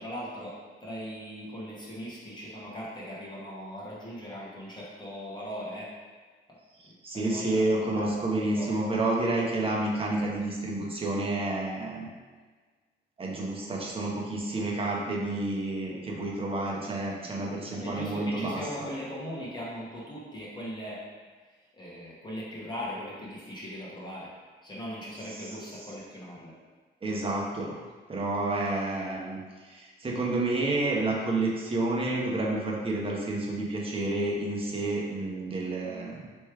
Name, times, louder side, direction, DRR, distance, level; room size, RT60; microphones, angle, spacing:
voice 1, 0.0-5.9 7.1-8.2 8.5-8.7 17.7-21.0 21.8-24.3 24.6-26.5, equal, 20° left, -7 dB, 1.4 m, -39 dB
voice 2, 6.8-12.1 13.2-18.6 25.4-25.5 27.0-27.8 28.1-36.3, right 2 dB, 30° right, -3 dB, 1.0 m, -30 dB
3.2 x 3.2 x 4.7 m, 1.4 s
cardioid pair, 90°, 20 cm